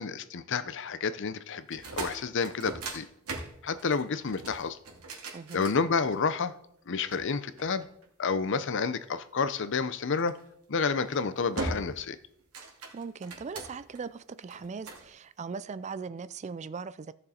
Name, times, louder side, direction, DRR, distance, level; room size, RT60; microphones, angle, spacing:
voice 1, 0.0-3.1 3.6-4.8 5.5-6.5 6.9-7.8 8.2-10.4 10.7-12.2, left 5 dB, 55° left, 0.6 m, -30 dB
sound 1, 1.6-6.4 7.1-8.4 10.2-10.5 11.0-11.2 11.6-12.1 12.4-14.0 14.5-15.1, right 2 dB, 85° right, 2.5 m, -39 dB
voice 2, 5.3-5.6 12.9-17.1, right 5 dB, 30° right, 0.3 m, -39 dB
15.0 x 6.7 x 4.3 m
head